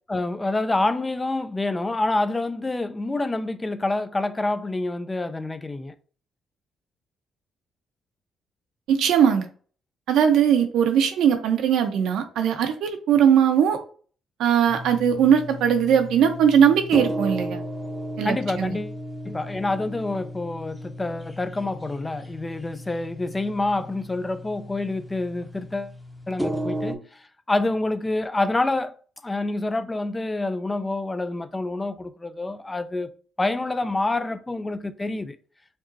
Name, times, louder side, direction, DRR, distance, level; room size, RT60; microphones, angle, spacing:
voice 1, 0.1-5.9 18.2-19.0 19.2-25.9 26.3-28.9 29.2-33.1 33.4-35.4, left 2 dB, 20° left, 0.4 m, -27 dB
voice 2, 8.9-9.5 10.1-13.8 14.4-17.6 18.2-18.8, right 8 dB, 80° right, 0.8 m, -20 dB
sound 1, 14.7-27.0, equal, 5° right, 0.8 m, -35 dB
5.2 x 2.8 x 2.7 m
cardioid pair, 90°, 0 cm